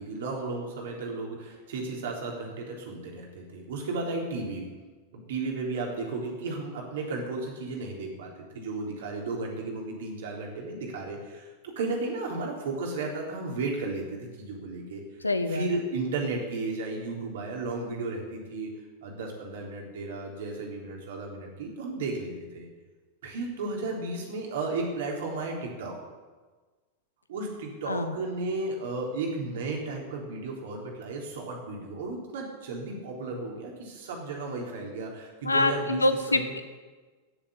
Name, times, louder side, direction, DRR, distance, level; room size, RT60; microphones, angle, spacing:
voice 1, 0.0-4.6 5.1-11.5 11.8-15.0 15.5-18.7 19.0-22.7 23.2-26.0 27.3-36.0 36.3-36.5, right 3 dB, 60° right, -1 dB, 3.6 m, -34 dB
voice 2, 15.2-15.7 27.9-28.2 35.4-36.6, left 2 dB, 80° left, 10 dB, 1.0 m, -25 dB
15.0 x 7.3 x 8.5 m, 1.3 s
figure-of-eight pair, 90°, 0 cm